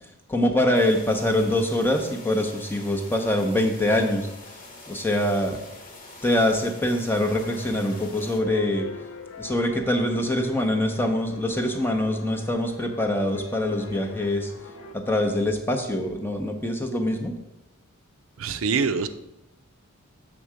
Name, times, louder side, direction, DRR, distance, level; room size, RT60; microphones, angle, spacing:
voice 1, 0.3-4.3 4.9-5.6 6.2-8.9 9.4-14.5 14.9-17.3, left 1 dB, 10° left, 3 dB, 0.7 m, -24 dB
sound 1, 0.7-8.4, left 2 dB, 40° left, 1.2 m, -45 dB
sound 2, 7.2-14.9, left 3 dB, 75° left, 0.7 m, -42 dB
voice 2, 18.4-19.1, right 5 dB, 70° right, 9 dB, 0.5 m, -24 dB
6.9 x 3.6 x 6.2 m, 0.87 s
head